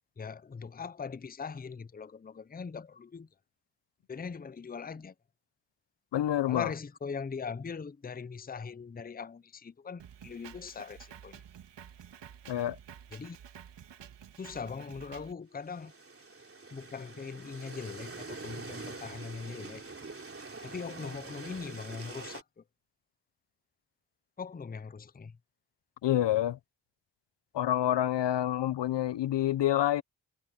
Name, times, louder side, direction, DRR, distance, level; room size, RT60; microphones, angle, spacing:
voice 1, 0.2-3.3 4.1-5.1 6.5-11.4 13.1-13.4 14.4-15.9 16.7-19.8 20.6-22.6 24.4-25.4, left 5 dB, 20° left, 0.7 m, -41 dB
voice 2, 6.1-6.7 12.5-12.8 26.0-26.6 27.5-30.0, left 12 dB, 70° left, 0.8 m, -27 dB
Drum kit, 10.0-15.3, right 9 dB, 75° right, 1.9 m, -51 dB
sound 1, 15.6-22.4, right 3 dB, 30° right, 3.4 m, -45 dB
cardioid pair, 60°, 44 cm